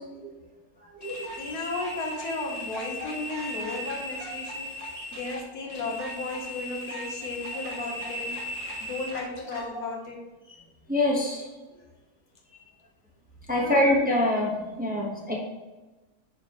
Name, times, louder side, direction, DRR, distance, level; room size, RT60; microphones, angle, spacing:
sound 1, 1.0-9.7, left 1 dB, 25° left, 1.5 m, -37 dB
voice 1, 1.4-8.4 8.8-10.3 13.5-13.9, left 3 dB, 75° left, 1 dB, 1.6 m, -35 dB
voice 2, 10.9-11.4 13.5-15.4, left 1 dB, 5° right, -2 dB, 0.9 m, -25 dB
10.5 x 4.4 x 3.0 m, 1.2 s
omnidirectional pair, 1.6 m